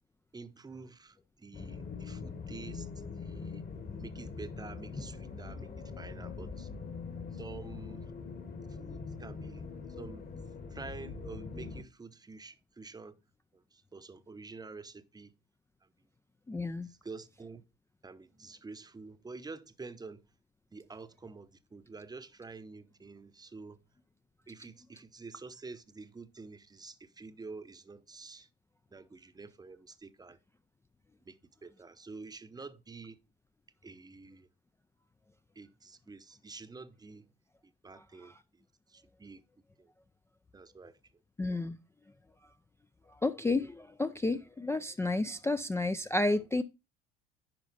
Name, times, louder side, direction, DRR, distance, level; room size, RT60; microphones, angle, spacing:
voice 1, 0.3-2.9 3.1-3.6 4.0-5.7 6.0-6.7 7.4-8.1 8.8-9.6 10.0-10.3 10.7-13.1 13.9-15.3 16.8-17.6 18.0-20.2 20.7-23.8 24.5-28.5 28.9-30.4 31.3-31.4 31.6-33.2 33.8-34.5 35.6-37.2 37.8-38.3 38.9-39.4 39.8-39.9 40.5-40.9, right 4 dB, 15° right, 0.8 m, -48 dB
sound 1, 1.5-11.8, left 5 dB, 30° left, 1.3 m, -43 dB
voice 2, 16.5-16.9 38.2-38.3 41.4-41.8 43.2-46.6, left 2 dB, 10° left, 0.3 m, -31 dB
10.5 x 4.2 x 4.0 m
supercardioid pair, 100°, 30 cm